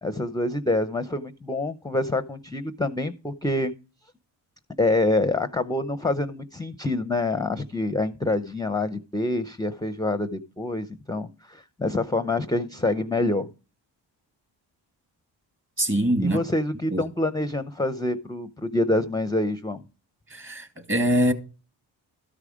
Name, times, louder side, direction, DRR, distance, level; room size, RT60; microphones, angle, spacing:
voice 1, 0.0-3.7 4.8-13.5 16.2-19.8, left 2 dB, 10° left, 0.6 m, -26 dB
voice 2, 15.8-16.4 16.9-17.0 20.3-21.3, right 1 dB, 25° right, 1.9 m, -23 dB
13.0 x 4.9 x 5.0 m
supercardioid pair, 50°, 49 cm